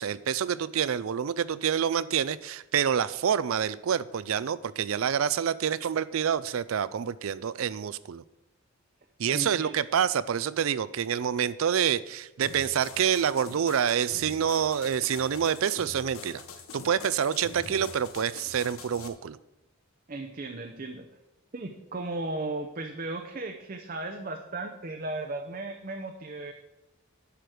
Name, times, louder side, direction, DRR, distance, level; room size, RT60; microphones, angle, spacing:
voice 1, 0.0-8.2 9.2-16.4 16.7-19.4, right 8 dB, 80° right, 17 dB, 0.4 m, -27 dB
voice 2, 9.3-9.7 20.1-21.1 21.5-26.5, right 2 dB, 40° right, 4 dB, 0.7 m, -36 dB
sound 1, 12.4-19.1, left 4 dB, 90° left, 1.1 m, -45 dB
10.5 x 5.1 x 6.3 m, 0.93 s
head